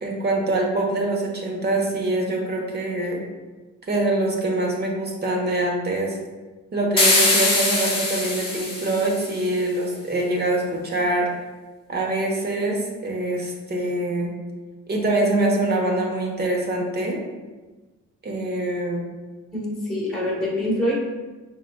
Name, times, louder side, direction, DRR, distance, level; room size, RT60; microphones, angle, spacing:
voice 1, 0.0-3.2 3.9-6.2 6.7-11.3 11.9-14.3 14.9-17.2 18.2-19.1, right 2 dB, 35° right, 0 dB, 1.1 m, -24 dB
sound 1, 7.0-9.4, left 2 dB, 20° left, 1.1 m, -21 dB
voice 2, 19.5-20.9, left 1 dB, ahead, -7 dB, 1.4 m, -25 dB
5.6 x 3.9 x 2.3 m, 1.2 s
cardioid pair, 90°, 30 cm